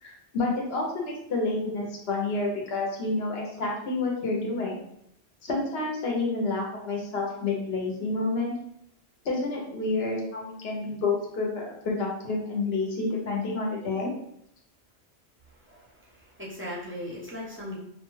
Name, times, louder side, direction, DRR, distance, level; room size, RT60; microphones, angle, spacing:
voice 1, 0.0-4.8 5.4-8.5 9.2-14.1, left 3 dB, 65° left, -1 dB, 0.9 m, -29 dB
voice 2, 15.5-17.8, left 1 dB, 15° right, -5 dB, 0.5 m, -39 dB
2.3 x 2.2 x 3.0 m, 0.74 s
omnidirectional pair, 1.1 m